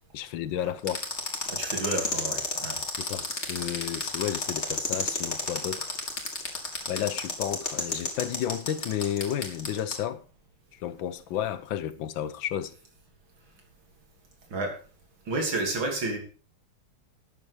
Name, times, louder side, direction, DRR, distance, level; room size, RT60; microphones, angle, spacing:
voice 1, 0.1-1.0 3.0-5.9 6.9-10.2 10.7-12.7, left 10 dB, 85° left, 1.6 m, -32 dB
sound 1, 0.9-9.9, left 3 dB, 35° left, 2.5 m, -30 dB
voice 2, 1.5-2.8 14.5-14.8 15.3-16.2, right 2 dB, 90° right, 3.8 m, -30 dB
12.5 x 8.6 x 4.8 m
omnidirectional pair, 2.1 m